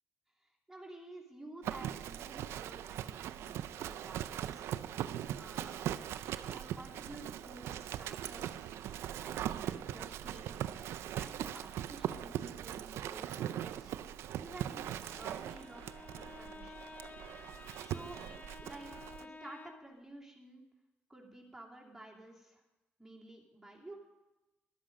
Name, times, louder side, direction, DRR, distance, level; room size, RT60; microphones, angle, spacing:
voice 1, 0.4-4.7 5.3-5.9 6.5-8.8 9.1-10.5 11.1-14.0 14.4-16.8 17.8-20.6 21.1-22.6 23.0-23.9, right 2 dB, 5° right, -3 dB, 2.9 m, -52 dB
Livestock farm animals working animals, 1.6-19.2, right 11 dB, 85° right, 0.5 m, -40 dB
Bowed string instrument, 14.8-20.0, left 3 dB, 40° left, 0.7 m, -52 dB
13.5 x 11.5 x 5.2 m, 1.0 s
cardioid pair, 100°, 4 cm